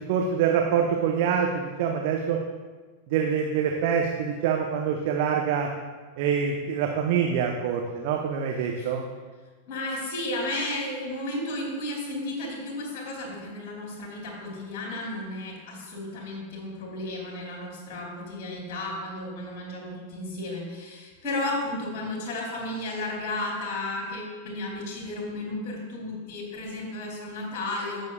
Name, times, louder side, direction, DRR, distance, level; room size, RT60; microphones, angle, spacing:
voice 1, 0.0-2.4 3.1-5.7 6.2-9.1, right 7 dB, 50° right, 2 dB, 0.7 m, -25 dB
voice 2, 9.7-28.1, left 2 dB, 45° left, -1 dB, 2.7 m, -33 dB
16.5 x 6.4 x 2.3 m, 1.4 s
figure-of-eight pair, 90°, 0 cm